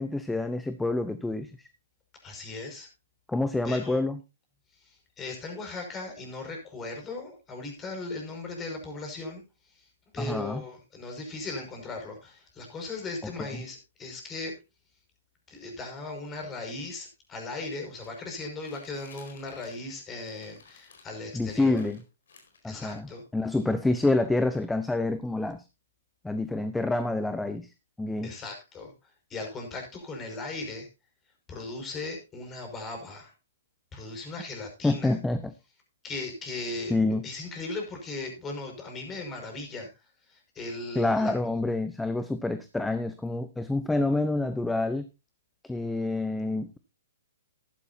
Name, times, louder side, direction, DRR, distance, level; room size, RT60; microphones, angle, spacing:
voice 1, 0.0-1.7 3.3-4.2 10.2-10.6 21.3-22.0 22.6-25.6 26.2-27.7 28.0-28.3 34.8-35.5 36.9-37.2 40.9-45.1 45.6-46.8, left 2 dB, 5° left, 10 dB, 0.8 m, -27 dB
voice 2, 2.2-2.9 3.6-4.0 4.8-9.9 10.1-14.6 15.5-21.8 22.6-23.2 28.2-30.9 31.5-33.3 33.9-35.2 36.0-41.4, left 3 dB, 20° left, 3 dB, 5.6 m, -38 dB
sound 1, 18.0-19.9 20.2-21.2 21.7-22.9, left 4 dB, 70° left, 4.6 m, -55 dB
14.0 x 11.0 x 2.8 m, 0.26 s
hypercardioid pair, 125°, 0 cm